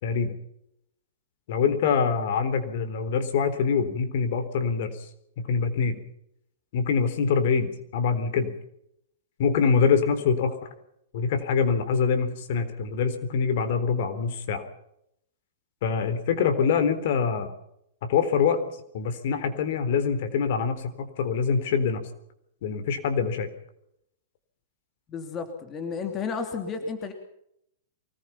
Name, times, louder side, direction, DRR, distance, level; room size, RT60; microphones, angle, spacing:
voice 1, 0.0-0.4 1.5-5.1 5.4-6.0 6.7-8.5 9.4-10.7 11.1-14.6 15.8-17.5 18.0-18.6 18.9-22.0 22.6-23.5, left 6 dB, 55° left, 9 dB, 3.9 m, -25 dB
voice 2, 25.1-27.1, left 5 dB, 20° left, 5 dB, 3.0 m, -32 dB
24.5 x 19.5 x 5.8 m, 0.75 s
hypercardioid pair, 155°, 0 cm